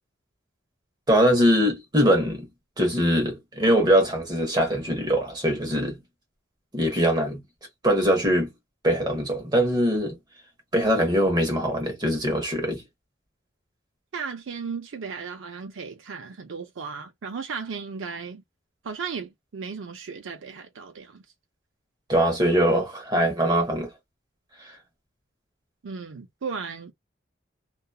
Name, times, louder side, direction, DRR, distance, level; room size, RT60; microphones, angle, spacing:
voice 1, 1.1-2.5 2.8-6.0 6.7-7.4 7.8-8.5 8.8-10.2 10.7-12.8 22.1-23.9, equal, 20° right, 0.9 m, -22 dB
voice 2, 14.1-18.4 18.8-21.2 25.8-26.9, right 5 dB, 90° right, 0.5 m, -35 dB
2.8 x 2.3 x 2.3 m
head